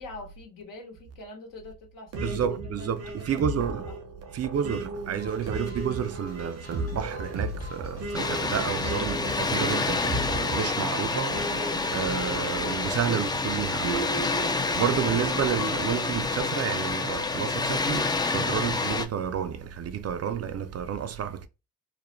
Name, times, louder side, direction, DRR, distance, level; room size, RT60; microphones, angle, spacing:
voice 1, 0.0-2.4 2.8-3.5 3.8-3.9, left 2 dB, 70° left, 1.0 m, -44 dB
sound 1, 2.1-13.2 13.8-15.4, right 2 dB, 75° right, 0.8 m, -36 dB
voice 2, 2.2-3.9 4.3-21.5, right 8 dB, 50° right, 0.4 m, -30 dB
sound 2, 5.2-12.9, left 3 dB, 45° left, 1.2 m, -48 dB
Water, 8.1-19.1, left 3 dB, 15° left, 0.3 m, -28 dB
2.4 x 2.0 x 3.0 m
hypercardioid pair, 45°, 33 cm